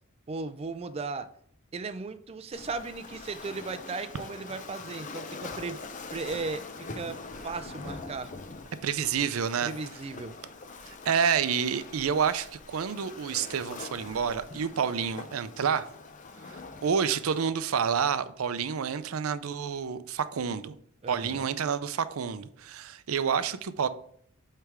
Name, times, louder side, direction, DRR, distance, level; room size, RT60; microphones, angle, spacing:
voice 1, 0.3-1.3 1.7-5.8 6.1-6.6 6.9-7.2 7.4-8.3 9.6-10.3 21.0-21.5, right 4 dB, 30° right, 0.4 m, -36 dB
Waves surf, 2.5-17.5, left 3 dB, 35° left, 0.6 m, -43 dB
voice 2, 8.8-9.7 11.0-15.8 16.8-20.8 21.1-23.9, right 7 dB, 85° right, 0.5 m, -28 dB
7.9 x 3.4 x 4.8 m
head